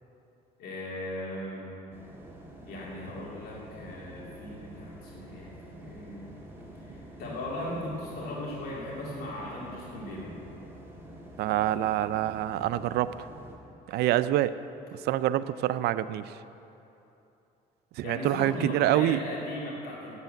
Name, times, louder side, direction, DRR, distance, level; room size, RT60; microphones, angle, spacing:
voice 1, 0.6-1.7 2.7-10.3 18.0-20.1, left 1 dB, 65° left, -5 dB, 2.6 m, -38 dB
sound 1, 1.9-13.6, right 1 dB, 15° right, 1.9 m, -48 dB
voice 2, 11.4-13.1 13.9-14.6 15.0-16.3 18.0-19.2, right 13 dB, 75° right, 14 dB, 0.4 m, -26 dB
8.2 x 7.9 x 9.0 m, 2.9 s
cardioid pair, 110°, 17 cm